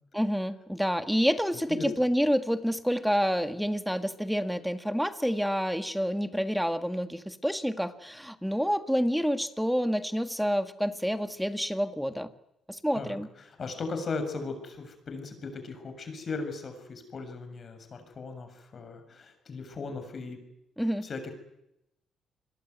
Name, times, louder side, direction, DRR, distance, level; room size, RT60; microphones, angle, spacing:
voice 1, 0.1-12.3 12.7-13.3 20.8-21.1, equal, ahead, 10 dB, 1.9 m, -28 dB
voice 2, 12.9-20.4 21.0-21.3, left 4 dB, 45° left, 8 dB, 7.0 m, -37 dB
28.0 x 22.0 x 9.5 m, 0.85 s
cardioid pair, 100°, 0 cm